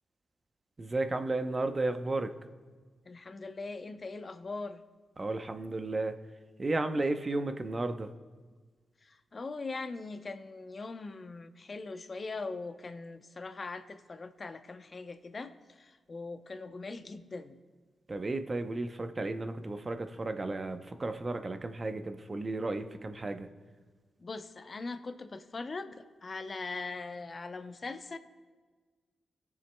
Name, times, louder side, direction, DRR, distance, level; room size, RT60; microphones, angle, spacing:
voice 1, 0.8-2.3 5.2-6.1 6.6-8.1 18.1-23.5, right 2 dB, 40° right, 8 dB, 0.7 m, -33 dB
voice 2, 3.1-4.8 9.0-17.6 24.2-28.2, left 3 dB, 45° left, 9 dB, 0.7 m, -41 dB
18.5 x 7.1 x 2.2 m, 1.4 s
supercardioid pair, 45°, 0 cm